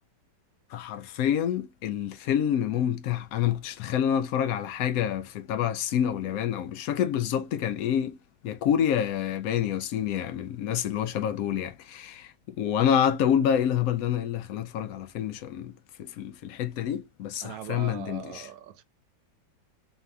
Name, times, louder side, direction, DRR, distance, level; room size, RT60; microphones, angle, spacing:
voice 1, 0.7-8.2 8.4-15.7 16.0-18.5, left 9 dB, 85° left, 0.7 m, -27 dB
voice 2, 17.4-18.8, right 11 dB, 75° right, 1.3 m, -40 dB
4.1 x 2.7 x 3.4 m
omnidirectional pair, 2.1 m